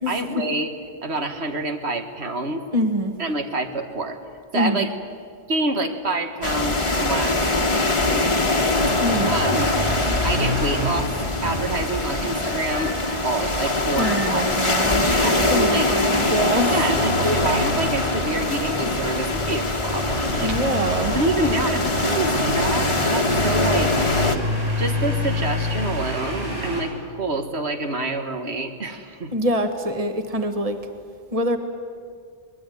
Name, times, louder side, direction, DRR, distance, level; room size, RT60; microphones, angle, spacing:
voice 1, 0.1-0.7 1.0-2.6 3.2-4.2 4.5-4.9 5.5-7.4 8.1-8.7 9.3-9.7 10.2-11.1 11.4-12.9 13.2-14.5 15.1-15.9 16.7-20.6 21.2-24.2 24.8-29.3, right 2 dB, 80° right, 5 dB, 1.9 m, -27 dB
voice 2, 2.7-3.2 4.5-4.9 8.9-9.4 14.0-17.5 20.4-21.2 29.3-30.8 31.3-31.6, equal, 35° right, 6 dB, 1.8 m, -25 dB
sound 1, 6.4-24.4, left 2 dB, 30° left, 1.3 m, -23 dB
sound 2, 8.7-26.8, equal, 55° right, 7.6 m, -29 dB
23.5 x 20.5 x 9.4 m, 2.1 s
omnidirectional pair, 1.1 m